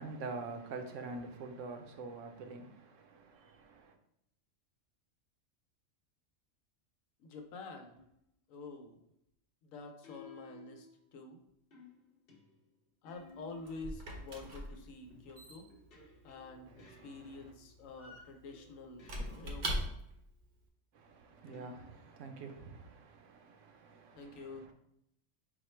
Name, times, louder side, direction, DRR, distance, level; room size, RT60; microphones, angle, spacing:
voice 1, 0.0-4.0 16.7-17.5 20.9-24.7, right 3 dB, 70° right, 0.9 m, -46 dB
voice 2, 7.2-8.0 8.5-9.0 9.6-11.4 13.0-15.7 16.2-19.9 24.1-24.7, left 3 dB, 80° left, 1.1 m, -48 dB
sound 1, 7.9-8.3 10.0-11.3 11.7-13.9 14.7-17.7 18.5-19.7 21.5-22.3, left 4 dB, 50° left, 0.9 m, -58 dB
Squeak / Wood, 13.1-20.3, equal, 45° right, 0.6 m, -43 dB
4.4 x 2.1 x 4.3 m
omnidirectional pair, 1.4 m